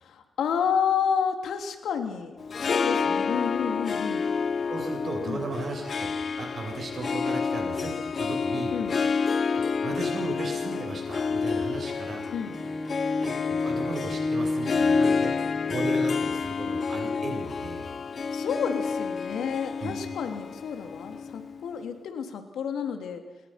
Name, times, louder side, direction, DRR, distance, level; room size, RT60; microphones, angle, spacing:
voice 1, 0.0-4.3 5.2-5.4 8.7-9.0 12.3-12.6 18.3-23.2, left 7 dB, 90° left, 6 dB, 3.1 m, -30 dB
Harp, 2.4-21.8, left 5 dB, 50° left, 0.9 m, -29 dB
voice 2, 4.7-8.8 9.5-12.3 13.2-15.3 15.7-17.9 19.8-19.9, right 3 dB, 55° right, 2 dB, 7.6 m, -36 dB
Bowed string instrument, 12.4-16.6, equal, 5° right, 2.5 m, -36 dB
27.0 x 22.0 x 6.0 m, 1.2 s
cardioid pair, 90°, 0 cm